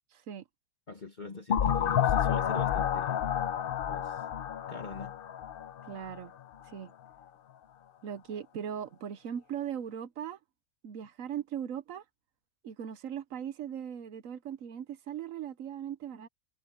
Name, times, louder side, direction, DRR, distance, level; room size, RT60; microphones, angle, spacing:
voice 1, 0.9-3.3 3.9-4.2 4.7-5.1, left 3 dB, 35° left, 1.5 m, -43 dB
sound 1, 1.5-6.2, left 9 dB, 55° left, 0.6 m, -30 dB
voice 2, 5.9-6.3 6.7-6.9 8.0-10.4 10.8-12.0 12.6-16.3, right 9 dB, 75° right, 1.2 m, -39 dB
omnidirectional pair, 1.4 m